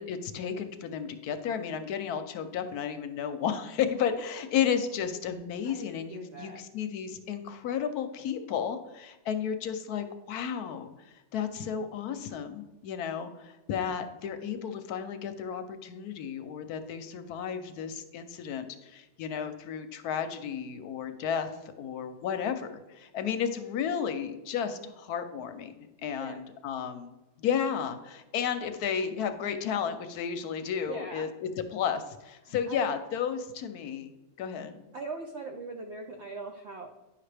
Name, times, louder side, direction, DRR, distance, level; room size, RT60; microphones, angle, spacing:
voice 1, 0.0-21.5 21.8-25.7 26.0-34.1 34.4-34.8, left 8 dB, 70° left, 9 dB, 1.0 m, -33 dB
voice 2, 5.6-6.6 26.2-26.4 30.9-31.3 32.7-32.9 34.9-36.9, right 3 dB, 70° right, 3 dB, 0.6 m, -40 dB
9.8 x 5.7 x 3.3 m, 1.0 s
omnidirectional pair, 1.8 m